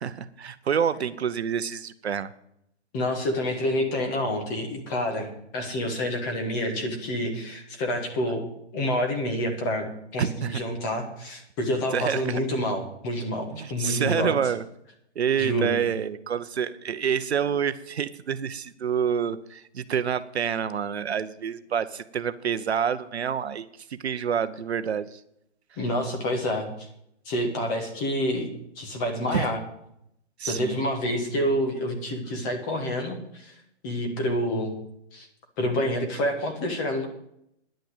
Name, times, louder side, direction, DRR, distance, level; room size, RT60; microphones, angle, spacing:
voice 1, 0.0-2.3 10.2-10.6 11.9-12.4 13.5-14.6 15.2-25.2 29.3-29.5 30.4-30.8, right 7 dB, 65° right, 12 dB, 0.8 m, -28 dB
voice 2, 2.9-8.5 8.7-14.4 15.4-15.8 25.8-26.9 27.2-28.5 28.8-29.6 30.4-33.5 33.8-34.7 35.1-35.3 35.6-37.1, left 1 dB, 15° left, 3 dB, 1.4 m, -28 dB
10.5 x 9.1 x 8.0 m, 0.77 s
hypercardioid pair, 165°, 35 cm